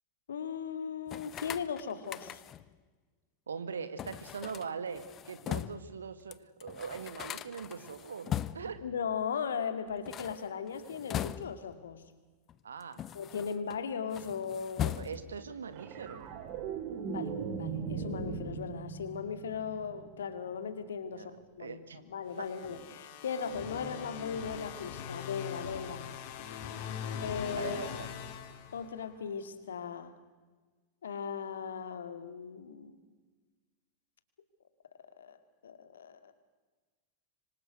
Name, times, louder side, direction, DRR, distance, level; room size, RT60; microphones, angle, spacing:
voice 1, 0.3-2.4 8.8-12.1 13.1-14.9 17.1-21.8 22.1-26.2 27.2-27.8 28.7-30.1 31.0-33.0 35.2-35.4 35.6-36.3, left 6 dB, 65° left, 11 dB, 2.3 m, -38 dB
sound 1, 1.1-2.7 4.0-5.9 6.3-6.4 6.6-8.8 9.9-11.8 12.5-13.8 14.1-15.4, left 11 dB, 30° left, 0.9 m, -40 dB
voice 2, 3.5-8.8 12.6-13.1 14.8-16.2 21.1-21.3 21.6-22.0 22.4-22.5 27.6-28.1, right 6 dB, 70° right, 12 dB, 2.0 m, -41 dB
sound 2, 15.7-20.2 22.6-22.8, right 5 dB, 45° right, 3.5 m, -39 dB
sound 3, 22.3-29.2, left 7 dB, 50° left, 3.2 m, -41 dB
26.0 x 25.5 x 6.4 m, 1.3 s
figure-of-eight pair, 90°, 0 cm